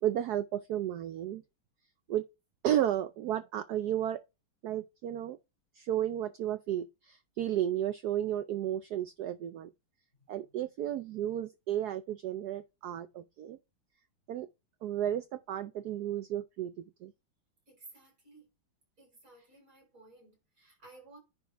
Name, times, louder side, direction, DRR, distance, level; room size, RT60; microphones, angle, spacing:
voice 1, 0.0-1.4 2.1-2.2 2.6-4.2 4.6-5.4 5.8-9.7 10.3-13.6 14.3-14.5 14.8-16.7 17.0-17.1, right 11 dB, 80° right, 0.8 m, -33 dB
voice 2, 17.7-18.5 19.0-21.2, right 3 dB, 40° right, 5.2 m, -56 dB
10.0 x 4.4 x 3.4 m
omnidirectional pair, 2.3 m